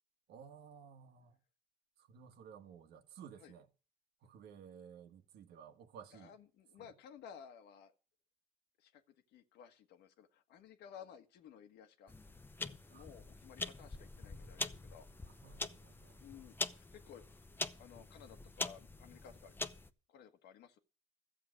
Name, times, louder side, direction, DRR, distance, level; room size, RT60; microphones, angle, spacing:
voice 1, 0.3-1.4 2.0-3.7 4.2-6.3 6.8-6.9 12.9-13.0 15.3-16.2, right 7 dB, 75° right, 1.6 m, -55 dB
voice 2, 6.1-7.9 8.8-9.0 9.3-12.1 12.6-15.1 16.2-17.2 17.8-19.5 20.1-20.8, left 8 dB, 80° left, 1.5 m, -56 dB
sound 1, 12.1-19.9, left 3 dB, 10° left, 0.8 m, -44 dB
13.5 x 7.7 x 6.4 m
cardioid pair, 110°, 17 cm